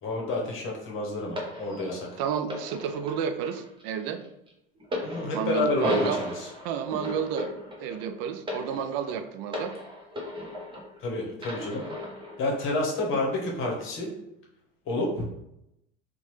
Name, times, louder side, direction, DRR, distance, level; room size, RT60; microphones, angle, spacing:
voice 1, 0.0-2.1 5.0-6.5 11.0-11.9 12.4-14.1 14.9-15.3, left 2 dB, 45° left, -1 dB, 1.0 m, -29 dB
sound 1, 1.4-11.0 11.4-12.4 13.2-13.4, left 1 dB, 15° right, 0.8 m, -36 dB
voice 2, 2.2-4.2 5.3-6.2 6.6-7.5 7.8-9.7, right 7 dB, 55° right, 9 dB, 0.4 m, -31 dB
2.8 x 2.2 x 3.1 m, 0.82 s
hypercardioid pair, 90°, 29 cm